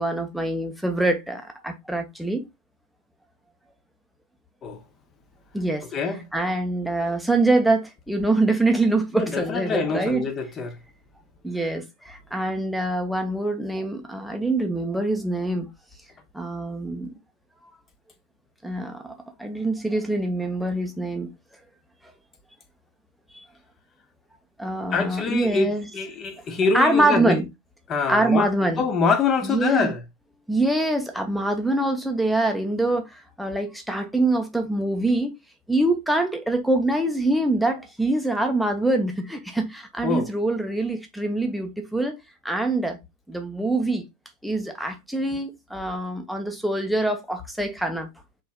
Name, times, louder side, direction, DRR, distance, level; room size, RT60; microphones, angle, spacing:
voice 1, 0.0-2.5 5.5-5.9 6.3-10.3 11.4-15.7 16.3-17.2 18.6-21.3 23.3-23.4 24.6-25.9 26.7-27.5 28.1-28.8 29.4-29.9 30.5-35.3 35.7-42.2 42.4-43.0 43.3-44.1 44.4-48.1, right 2 dB, ahead, 0.7 m, -24 dB
voice 2, 5.9-6.2 9.1-10.7 24.9-27.4 27.9-28.5 28.8-30.0 40.0-40.3, left 4 dB, 25° left, 0.8 m, -25 dB
4.4 x 3.1 x 2.2 m
figure-of-eight pair, 90°, 0 cm